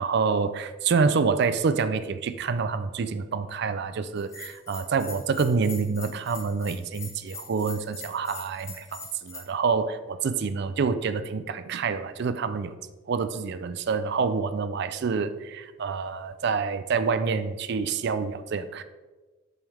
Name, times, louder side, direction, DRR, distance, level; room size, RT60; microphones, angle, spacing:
voice 1, 0.0-12.8 13.1-18.8, right 5 dB, 55° right, 12 dB, 0.4 m, -27 dB
Bell, 4.2-9.4, left 3 dB, 15° left, 1.0 m, -42 dB
7.7 x 5.3 x 3.5 m, 1.2 s
head